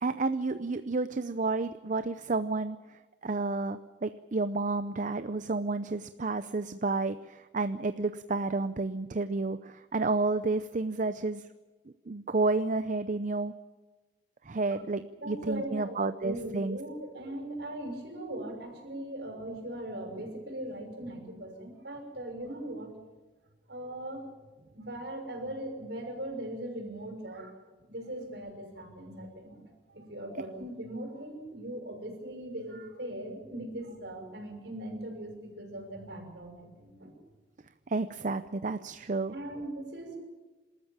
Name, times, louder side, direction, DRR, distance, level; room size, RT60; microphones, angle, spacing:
voice 1, 0.0-2.8 3.2-11.4 12.1-13.5 14.5-16.8 37.9-39.3, right 3 dB, 45° right, 11 dB, 0.6 m, -31 dB
voice 2, 15.2-22.9 23.7-24.3 24.7-27.5 27.9-37.2 39.3-40.2, right 1 dB, 65° right, 4 dB, 6.3 m, -40 dB
27.0 x 13.5 x 8.9 m, 1.2 s
head